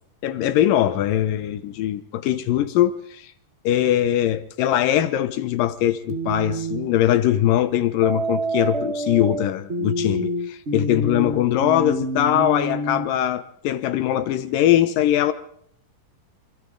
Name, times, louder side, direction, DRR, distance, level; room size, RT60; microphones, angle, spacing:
voice 1, 0.2-3.3 3.6-15.3, left 12 dB, 85° left, 2.7 m, -21 dB
sound 1, 6.1-6.9 8.0-13.1, right 1 dB, 65° right, 0.6 m, -27 dB
27.0 x 25.5 x 3.8 m
omnidirectional pair, 3.8 m